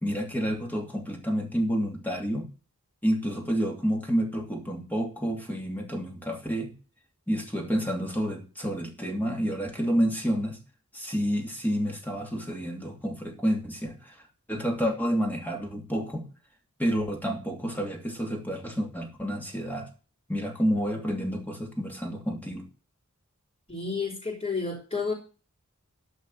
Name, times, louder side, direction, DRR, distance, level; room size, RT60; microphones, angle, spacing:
voice 1, 0.0-2.5 3.0-6.7 7.3-10.6 10.9-14.1 14.5-16.3 16.8-19.9 20.3-22.7, equal, 10° left, 2 dB, 2.6 m, -29 dB
voice 2, 23.7-25.1, left 4 dB, 30° left, -5 dB, 4.2 m, -30 dB
13.5 x 5.5 x 7.6 m, 0.35 s
head